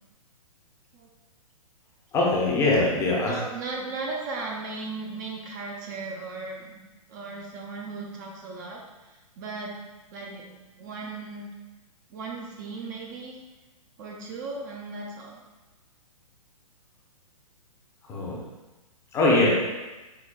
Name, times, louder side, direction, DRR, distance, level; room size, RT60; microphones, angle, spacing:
voice 1, 2.1-3.3 18.1-18.4 19.1-19.5, left 2 dB, 15° left, -4 dB, 0.5 m, -22 dB
voice 2, 3.2-6.8 7.1-9.7 10.1-11.5 12.1-13.4 14.0-15.4, right 3 dB, 30° right, -1 dB, 0.4 m, -36 dB
4.8 x 2.1 x 2.2 m, 1.1 s
hypercardioid pair, 135°, 19 cm